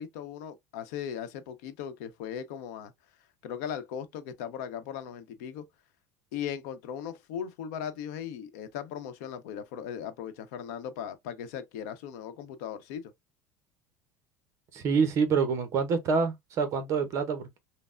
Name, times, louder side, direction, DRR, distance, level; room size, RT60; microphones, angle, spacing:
voice 1, 0.0-2.9 3.4-5.6 6.3-13.1, left 8 dB, 75° left, 0.7 m, -38 dB
voice 2, 14.7-17.6, right 5 dB, 35° right, 0.6 m, -27 dB
5.4 x 2.0 x 2.4 m
cardioid pair, 175°, 9 cm